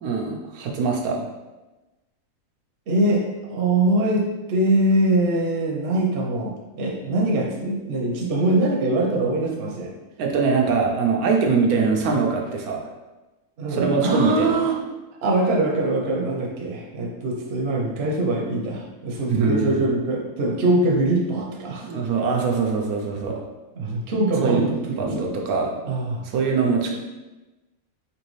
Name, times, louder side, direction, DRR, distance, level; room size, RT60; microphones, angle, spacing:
voice 1, 0.0-1.2 10.2-12.9 13.7-14.5 19.3-19.9 21.8-23.4 24.4-25.8 26.3-27.0, right 5 dB, 90° right, 0 dB, 1.1 m, -22 dB
voice 2, 2.9-9.9 13.6-14.8 15.2-21.9 23.8-25.3 25.8-26.2, right 2 dB, 55° right, -2 dB, 0.9 m, -23 dB
4.0 x 2.9 x 3.1 m, 1.1 s
omnidirectional pair, 1.5 m